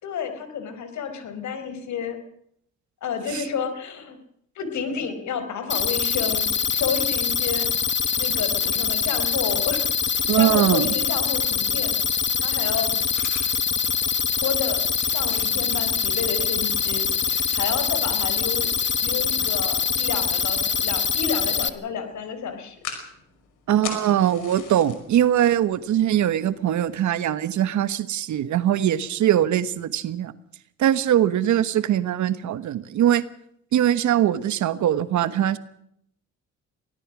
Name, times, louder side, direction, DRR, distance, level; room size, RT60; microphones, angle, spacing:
voice 1, 0.0-2.2 3.0-4.2 4.5-7.7 8.2-12.9 14.4-18.8 19.0-22.8, left 6 dB, 70° left, 9 dB, 4.8 m, -31 dB
sound 1, 5.7-21.7, left 6 dB, 40° left, 1.5 m, -24 dB
voice 2, 10.3-10.9 23.7-30.3 30.8-33.2 33.7-35.6, right 11 dB, 70° right, 14 dB, 1.3 m, -21 dB
sound 2, 12.4-27.4, left 7 dB, 85° left, 5.5 m, -45 dB
23.5 x 17.5 x 6.2 m, 0.70 s
cardioid pair, 90°, 30 cm